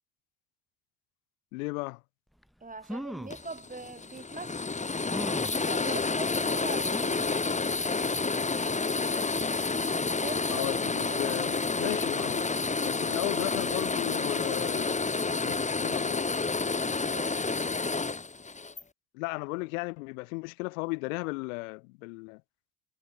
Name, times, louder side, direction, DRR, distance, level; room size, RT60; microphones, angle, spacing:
voice 1, 1.5-2.0 10.5-12.5 12.9-16.3 19.1-22.4, left 28 dB, 80° left, 3.7 m, -35 dB
sound 1, 2.4-2.5 2.8-3.4 4.2-4.3 5.1-5.6 6.9-7.4 7.9-8.0 8.3-8.4, equal, ahead, 2.9 m, -39 dB
voice 2, 2.6-4.7 5.5-7.3 10.0-10.7 11.1-11.3 16.7-17.4, right 3 dB, 20° right, 4.1 m, -42 dB
sound 2, 3.3-18.8, left 4 dB, 15° left, 1.7 m, -29 dB
hypercardioid pair, 65°, 40 cm